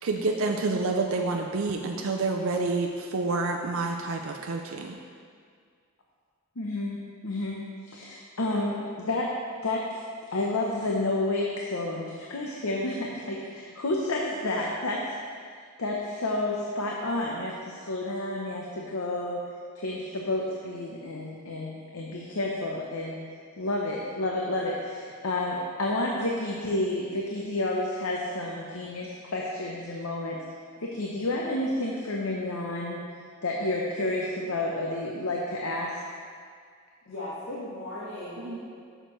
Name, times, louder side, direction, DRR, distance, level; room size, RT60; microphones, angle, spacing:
voice 1, 0.0-5.0 38.4-38.6, right 3 dB, 60° right, 1 dB, 0.5 m, -28 dB
voice 2, 6.6-9.3 9.6-10.0 10.3-15.0 15.8-19.4 19.8-23.2 23.6-30.4 30.8-33.0 33.4-36.0, left 2 dB, 75° left, -2 dB, 0.8 m, -30 dB
voice 3, 37.1-38.6, left 1 dB, 60° left, -9 dB, 1.6 m, -37 dB
11.0 x 6.6 x 3.1 m, 2.1 s
head